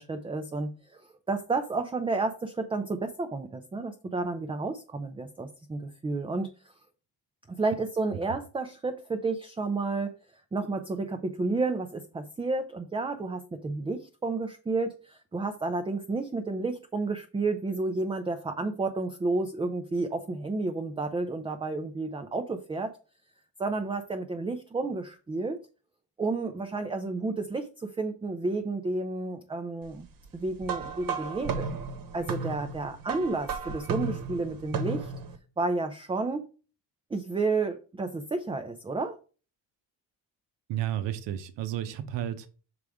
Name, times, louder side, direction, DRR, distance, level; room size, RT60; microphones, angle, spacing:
voice 1, 0.0-6.7 7.5-10.2 10.5-22.9 23.6-25.6 26.2-30.1 30.3-31.7 32.1-35.1 35.6-36.5 37.1-39.2, right 3 dB, 15° right, 6 dB, 0.4 m, -31 dB
sound 1, 30.6-35.4, right 5 dB, 50° right, 1.1 m, -34 dB
voice 2, 40.7-42.5, right 12 dB, 75° right, 10 dB, 0.9 m, -32 dB
6.4 x 4.8 x 3.5 m, 0.35 s
cardioid pair, 150°, 44 cm